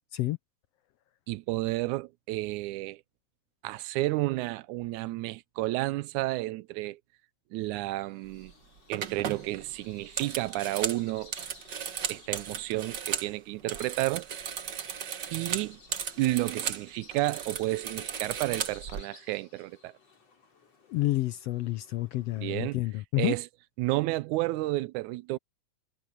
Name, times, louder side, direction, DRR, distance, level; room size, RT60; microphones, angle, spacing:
voice 1, 1.3-3.0 3.6-7.0 7.5-8.5 8.9-11.3 12.1-14.3 15.3-15.8 16.2-19.9 22.4-22.8 23.2-23.5 23.8-25.4, right 18 dB, 85° right, 2.0 m, -31 dB
Bird vocalization bird call bird song, 7.9-22.7, left 4 dB, 55° left, 5.5 m, -56 dB
sound 1, 8.3-8.5 8.9-13.3 13.6-16.8 17.1-19.0, right 8 dB, 50° right, 1.3 m, -36 dB
voice 2, 20.9-23.3, left 17 dB, 75° left, 1.5 m, -29 dB
omnidirectional pair, 3.4 m